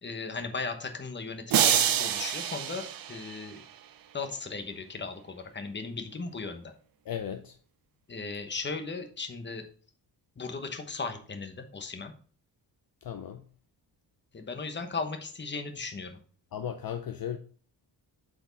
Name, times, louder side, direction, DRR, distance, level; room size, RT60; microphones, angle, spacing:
voice 1, 0.0-3.6 4.1-6.7 8.1-9.6 10.4-12.1 14.3-16.2, left 4 dB, 25° left, 1.1 m, -37 dB
sound 1, 1.5-3.8, right 10 dB, 55° right, 0.6 m, -27 dB
voice 2, 7.1-7.5 13.0-13.4 16.5-17.4, left 9 dB, 55° left, 0.6 m, -36 dB
7.6 x 4.6 x 4.0 m
wide cardioid pair, 135°, 43 cm